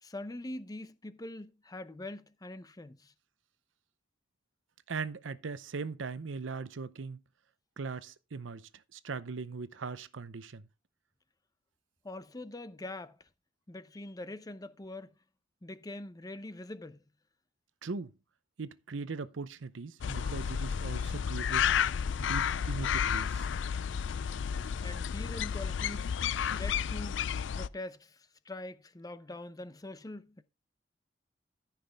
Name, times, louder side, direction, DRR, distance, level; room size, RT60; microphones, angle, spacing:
voice 1, 0.0-3.1 12.0-13.2 13.7-15.1 15.6-17.0 24.8-26.1 26.5-27.3 27.5-30.4, left 2 dB, 20° left, 0.6 m, -43 dB
voice 2, 4.9-7.2 7.8-10.6 17.8-18.1 18.6-21.7 22.2-23.5, right 4 dB, 85° right, 0.7 m, -39 dB
sound 1, 20.0-27.7, left 7 dB, 70° left, 0.4 m, -31 dB
14.0 x 5.8 x 3.4 m
head